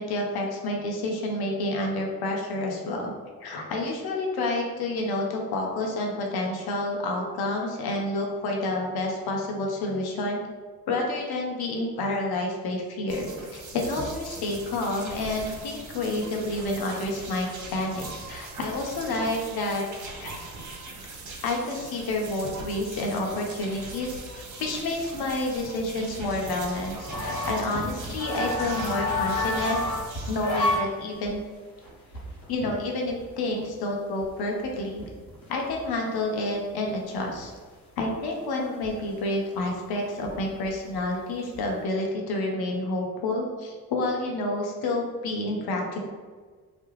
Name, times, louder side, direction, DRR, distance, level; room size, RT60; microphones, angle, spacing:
voice 1, 0.0-3.1 3.4-10.4 10.9-19.8 20.2-20.3 21.4-29.8 30.3-31.4 32.5-35.0 35.5-37.5 38.0-46.1, left 2 dB, 55° left, 0 dB, 0.7 m, -29 dB
sound 1, 13.1-30.8, right 3 dB, 40° right, 0.7 m, -41 dB
sound 2, 26.2-30.9 31.2-31.4 31.8-33.2 33.6-33.7 34.2-34.3 34.5-36.1 36.5-36.6 36.8-37.4 38.0-38.1 38.8-38.9 39.2-40.3 40.6-41.0 41.3-41.7, left 2 dB, 85° left, 0.8 m, -30 dB
2.3 x 2.1 x 3.0 m, 1.5 s
hypercardioid pair, 45°, 45 cm